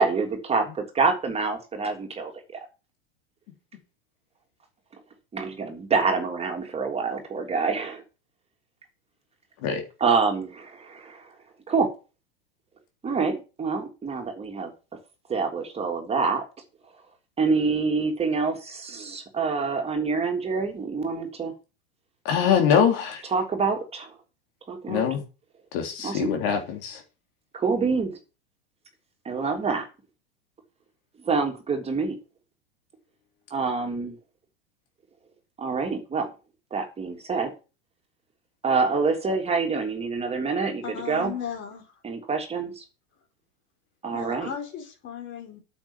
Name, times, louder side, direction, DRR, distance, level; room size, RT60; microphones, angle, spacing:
voice 1, 0.0-2.3 5.3-8.0 10.0-11.3 11.7-11.9 13.0-14.7 15.3-16.4 17.4-21.5 23.3-24.1 24.7-25.0 26.0-26.3 27.5-28.2 29.2-29.9 31.2-32.2 33.5-34.1 35.6-36.3 36.7-37.5 38.6-41.3 42.0-42.8 44.0-44.5, right 4 dB, 20° right, 3.2 m, -26 dB
voice 2, 22.3-23.2 24.9-25.2 25.7-27.0, left 7 dB, 60° left, 3.5 m, -23 dB
voice 3, 40.8-42.0 44.1-45.6, left 8 dB, 40° left, 4.5 m, -36 dB
8.9 x 7.5 x 7.4 m
hypercardioid pair, 115°, 30 cm